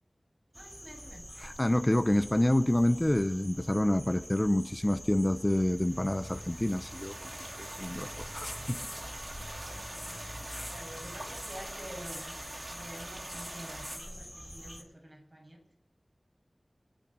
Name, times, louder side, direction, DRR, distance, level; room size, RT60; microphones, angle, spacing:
sound 1, 0.5-14.8, equal, 5° right, 3.7 m, -45 dB
voice 1, 0.5-1.3 9.9-15.6, equal, 45° right, -1 dB, 7.8 m, -49 dB
voice 2, 1.4-7.3 7.6-8.8 10.5-10.7, left 1 dB, 25° left, 9 dB, 0.8 m, -28 dB
sound 2, 5.6-14.0, right 1 dB, 65° right, 2.8 m, -44 dB
24.5 x 9.1 x 6.3 m, 0.82 s
wide cardioid pair, 45°, 0 cm